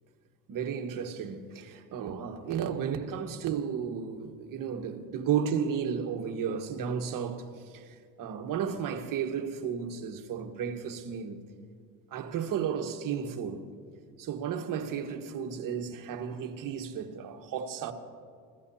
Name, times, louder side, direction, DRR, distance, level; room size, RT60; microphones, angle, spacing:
voice 1, 0.5-11.5 12.1-13.7 14.2-17.9, right 7 dB, 50° right, 1.5 m, -33 dB
26.0 x 16.0 x 2.8 m
supercardioid pair, 100°, 42 cm